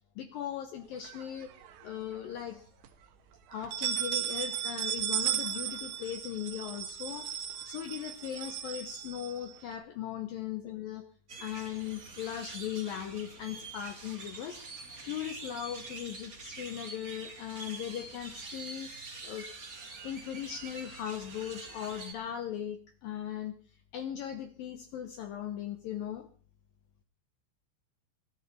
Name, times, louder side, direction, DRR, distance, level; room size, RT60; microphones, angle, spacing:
voice 1, 0.2-1.5 1.8-2.7 3.5-11.0 11.4-18.9 19.2-19.5 20.0-23.5 23.9-26.3, left 10 dB, 70° left, 7 dB, 2.2 m, -38 dB
sound 1, 1.0-2.0 2.4-2.5 2.8-2.9 3.5-9.7, right 11 dB, 75° right, 3.3 m, -35 dB
sound 2, 11.3-22.1, right 3 dB, 40° right, 1.3 m, -46 dB
21.5 x 12.5 x 4.2 m, 0.41 s
omnidirectional pair, 5.1 m